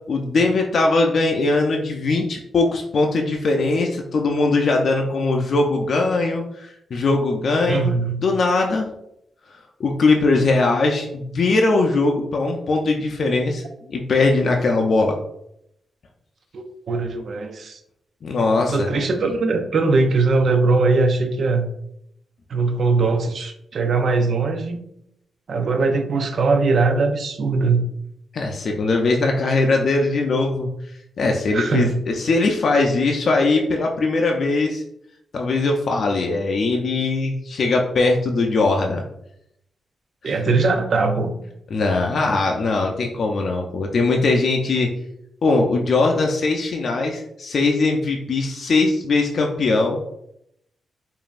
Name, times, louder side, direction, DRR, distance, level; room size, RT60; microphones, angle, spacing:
voice 1, 0.1-7.9 8.2-8.9 9.8-13.6 13.9-15.2 18.2-19.0 28.3-30.7 31.2-34.8 35.3-39.0 40.2-40.5 41.7-44.9 45.4-50.0, left 3 dB, 55° left, 1 dB, 0.4 m, -20 dB
voice 2, 7.7-8.2 16.5-17.8 18.7-21.7 22.5-24.8 25.5-27.9 31.5-32.0 40.2-41.3, right 3 dB, 55° right, 6 dB, 0.5 m, -20 dB
5.1 x 2.6 x 2.4 m, 0.77 s
wide cardioid pair, 125°, 0 cm